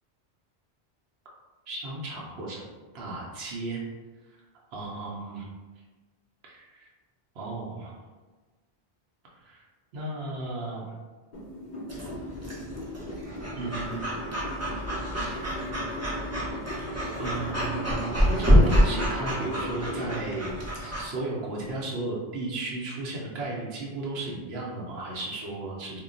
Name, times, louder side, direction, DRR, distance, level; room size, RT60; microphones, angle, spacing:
voice 1, 1.7-2.6 2.9-3.8 4.7-5.5 6.4-6.9 7.4-7.9 9.4-9.6 9.9-10.9 13.6-14.0 15.2-15.6 17.2-26.0, right 2 dB, 85° right, -3 dB, 0.8 m, -34 dB
sound 1, 11.3-20.8, left 1 dB, 55° left, 0.6 m, -37 dB
Breathing / Dog, 11.9-21.0, equal, 25° right, 0.3 m, -27 dB
2.2 x 2.1 x 3.7 m, 1.3 s
omnidirectional pair, 1.0 m